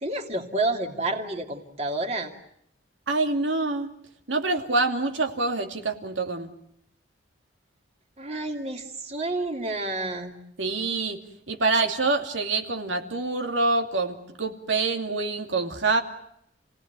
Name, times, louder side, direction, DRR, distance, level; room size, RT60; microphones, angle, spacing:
voice 1, 0.0-2.3 8.2-10.3, right 2 dB, 35° right, 3 dB, 2.8 m, -29 dB
voice 2, 3.1-3.9 4.3-6.5 10.6-11.2 11.5-16.0, right 3 dB, 85° right, 4 dB, 2.6 m, -26 dB
29.5 x 18.0 x 9.1 m, 0.75 s
head